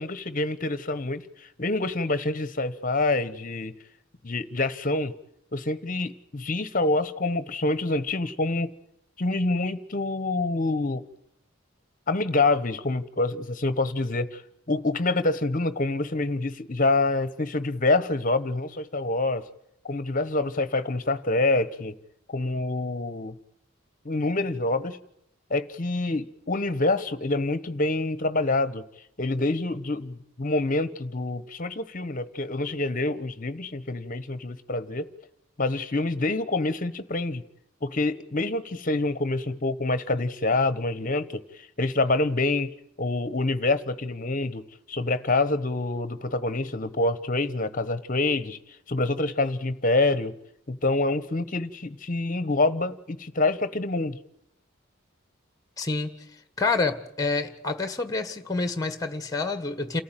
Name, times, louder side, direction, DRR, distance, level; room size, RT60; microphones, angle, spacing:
voice 1, 0.0-3.7 4.2-5.1 5.5-8.7 9.2-11.0 12.1-14.4 14.7-19.4 19.8-22.0 22.3-23.3 24.0-25.0 25.5-28.8 29.2-35.1 35.6-37.4 37.8-41.4 41.8-48.6 48.9-50.3 50.7-54.2, left 2 dB, 40° left, 1.1 m, -26 dB
voice 2, 55.8-56.1 56.6-60.0, left 3 dB, 15° left, 1.6 m, -28 dB
29.0 x 14.5 x 9.1 m
head